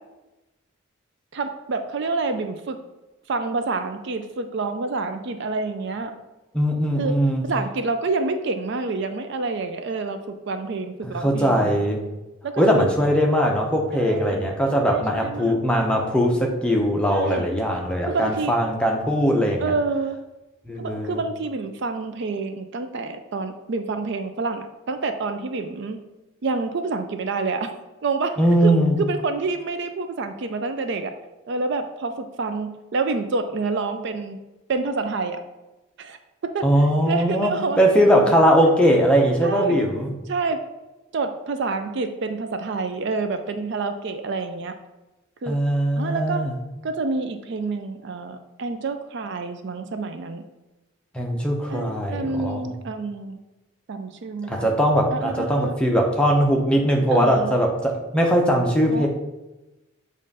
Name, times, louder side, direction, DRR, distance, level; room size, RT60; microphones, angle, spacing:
voice 1, 1.3-2.8 3.3-6.2 7.0-7.1 7.4-11.9 12.4-12.8 13.9-14.4 14.9-15.6 17.1-17.5 18.1-18.6 19.6-20.2 20.8-26.0 26.4-27.7 28.0-31.1 31.5-34.4 34.7-35.4 36.0-36.2 36.4-37.8 38.8-39.0 39.4-39.8 40.3-40.6 41.1-44.8 45.4-45.6 46.0-46.5 46.8-50.4 51.7-53.4 53.9-54.7 55.1-55.8 57.1-57.6 58.9-59.1, right 3 dB, 55° right, 8 dB, 0.4 m, -28 dB
voice 2, 6.5-7.4 11.0-12.0 12.6-19.7 20.7-21.2 28.4-28.9 36.6-40.1 45.5-46.5 51.1-52.7 54.5-59.1, equal, 5° left, 0 dB, 0.7 m, -20 dB
7.4 x 2.5 x 5.3 m, 1.0 s
head